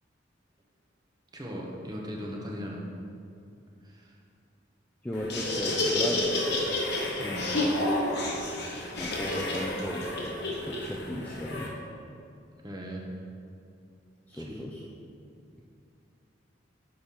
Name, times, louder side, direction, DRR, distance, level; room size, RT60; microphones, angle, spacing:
voice 1, 1.3-2.8 3.8-4.2 7.2-7.5 12.6-13.1 14.3-14.5, equal, 20° right, -2 dB, 0.9 m, -38 dB
voice 2, 5.0-6.9 7.6-7.7 9.0-11.7 14.3-14.8, equal, 10° left, -3 dB, 0.4 m, -36 dB
Laughter, 5.1-11.7, left 1 dB, 55° left, 1.2 m, -30 dB
6.6 x 5.4 x 4.3 m, 2.5 s
head